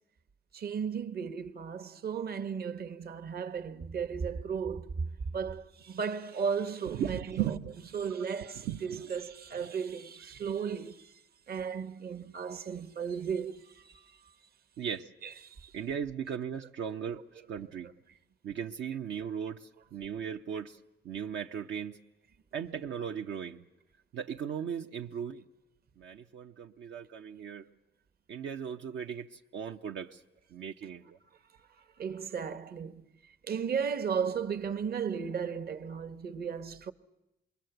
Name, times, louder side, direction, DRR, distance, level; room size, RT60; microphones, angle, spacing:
voice 1, 0.5-7.5 7.9-11.0 11.5-13.9 15.2-15.3 15.6-15.7 32.0-33.0 33.5-36.9, right 6 dB, 50° right, 1.2 m, -35 dB
voice 2, 6.9-8.3 8.6-9.1 14.8-15.1 15.7-17.9 18.4-20.8 21.0-22.0 22.5-23.6 24.1-25.4 26.0-27.7 28.3-30.2 30.5-31.2, right 8 dB, 70° right, 0.8 m, -37 dB
27.0 x 22.0 x 7.9 m
cardioid pair, 90°, 20 cm